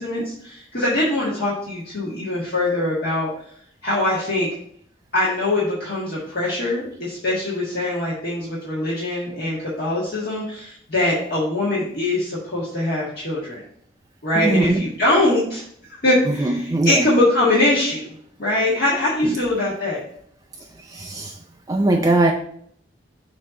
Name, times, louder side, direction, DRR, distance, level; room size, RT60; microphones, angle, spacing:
voice 1, 0.0-3.3 3.8-4.5 5.1-13.6 14.2-15.6 16.0-18.1 18.4-20.0, left 1 dB, 55° left, -7 dB, 1.5 m, -22 dB
voice 2, 14.3-14.9 16.2-17.2 19.2-19.4 20.9-21.3 21.7-22.3, right 2 dB, 20° right, 3 dB, 0.3 m, -21 dB
6.5 x 2.8 x 5.6 m, 0.65 s
head